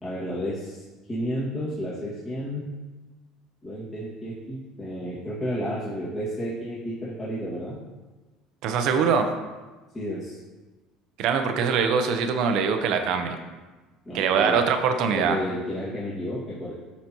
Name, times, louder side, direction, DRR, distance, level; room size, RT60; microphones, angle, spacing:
voice 1, 0.0-2.7 3.6-7.8 9.9-10.4 14.1-14.6 15.1-16.7, equal, 25° left, -9 dB, 2.0 m, -32 dB
voice 2, 8.6-9.3 11.2-13.4 14.1-15.4, right 6 dB, 65° right, 6 dB, 0.7 m, -23 dB
11.5 x 4.2 x 3.0 m, 1.2 s
supercardioid pair, 95°, 0 cm